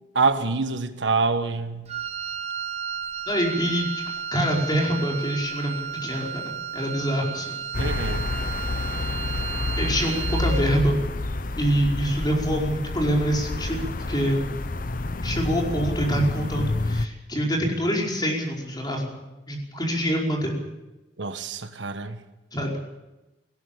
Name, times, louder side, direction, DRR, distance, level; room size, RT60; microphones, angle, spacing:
voice 1, 0.1-1.9 7.8-8.3 21.2-22.2, right 4 dB, 90° right, 9 dB, 1.5 m, -26 dB
Wind instrument woodwind instrument, 1.9-10.7, right 7 dB, 35° right, 1.3 m, -33 dB
voice 2, 3.3-4.0 4.3-6.4 6.7-7.5 9.8-11.0 11.6-14.4 15.2-19.1 19.5-20.6 22.5-22.8, equal, 25° left, -1 dB, 5.1 m, -25 dB
sound 1, 7.7-17.1, left 2 dB, 50° left, 0.8 m, -29 dB
18.5 x 17.0 x 8.7 m, 1.0 s
head